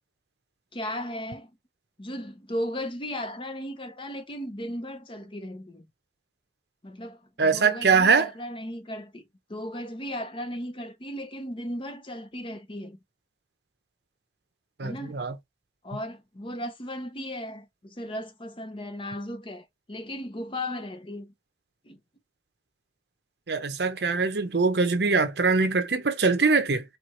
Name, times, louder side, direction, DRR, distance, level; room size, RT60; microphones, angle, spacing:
voice 1, 0.7-1.5 2.0-5.9 6.8-9.2 9.5-13.0 14.8-15.2 15.8-21.3 21.8-22.0, left 1 dB, 30° left, 0.9 m, -36 dB
voice 2, 7.4-8.3 14.8-15.3 23.5-26.8, right 4 dB, 65° right, 0.8 m, -23 dB
4.6 x 2.5 x 4.4 m
head